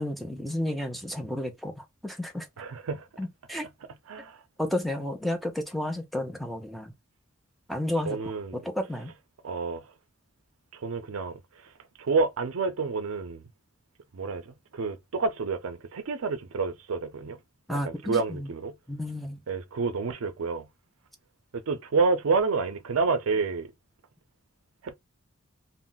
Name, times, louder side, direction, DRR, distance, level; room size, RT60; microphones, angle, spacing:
voice 1, 0.0-2.5 3.2-3.7 4.6-6.9 7.7-9.1 17.7-18.5 18.9-19.4, left 1 dB, ahead, 0.5 m, -32 dB
voice 2, 2.6-3.1 4.1-4.4 8.1-8.6 9.4-9.9 10.7-11.4 12.0-13.4 14.1-17.4 17.7-18.8 19.5-20.7 21.5-23.7 24.8-25.0, right 4 dB, 80° right, 0.5 m, -29 dB
2.3 x 2.0 x 3.7 m
head